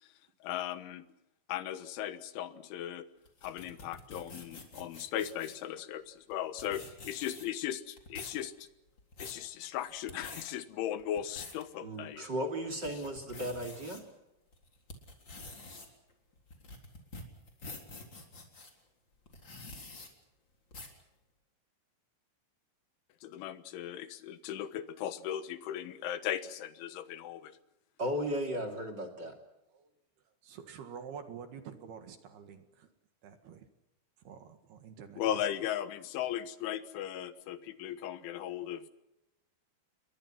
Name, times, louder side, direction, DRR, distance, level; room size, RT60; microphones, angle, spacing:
voice 1, 0.4-1.1 1.5-3.1 3.4-8.7 9.2-12.3 12.9-13.0 23.2-27.6 35.2-38.9, left 11 dB, 80° left, 12 dB, 3.7 m, -37 dB
sound 1, 3.2-5.6 6.3-6.4 6.6-7.6 8.0-8.4 8.9-9.4 9.9-10.4 11.0-11.6 12.1-12.2 12.7-14.0 14.5-18.7 19.3-20.1 20.7-21.0, left 2 dB, 25° left, 3.9 m, -47 dB
voice 2, 11.8-14.0 28.0-29.4, equal, 30° right, 3 dB, 2.7 m, -35 dB
voice 3, 30.4-32.9 33.2-33.7 34.2-35.2, right 7 dB, 60° right, 8 dB, 3.5 m, -48 dB
29.5 x 22.5 x 5.9 m, 0.90 s
omnidirectional pair, 5.4 m